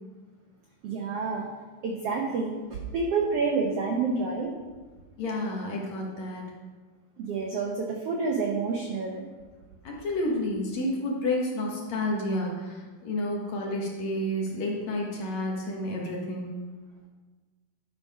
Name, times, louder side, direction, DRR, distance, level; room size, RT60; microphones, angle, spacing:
voice 1, 0.8-1.5 1.8-4.5 7.2-9.2, right 4 dB, 75° right, 0 dB, 1.4 m, -28 dB
voice 2, 5.2-6.5 9.8-16.6, left 1 dB, 60° left, -2 dB, 2.3 m, -30 dB
11.0 x 4.8 x 5.5 m, 1.3 s
omnidirectional pair, 4.0 m